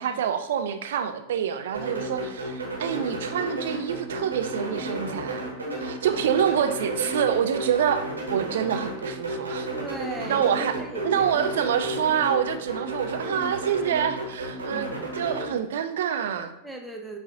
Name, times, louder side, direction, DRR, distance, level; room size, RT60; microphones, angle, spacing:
voice 1, 0.0-5.5 5.8-8.0 8.3-9.7 10.3-10.8 11.0-16.5, right 8 dB, 60° right, 8 dB, 0.4 m, -26 dB
sound 1, 1.7-15.5, right 1 dB, 75° right, 0.9 m, -32 dB
voice 2, 9.7-11.6 14.7-15.0 16.6-17.2, right 3 dB, 5° right, 1 dB, 0.5 m, -38 dB
6.3 x 2.4 x 2.8 m, 0.82 s
figure-of-eight pair, 90°, 0 cm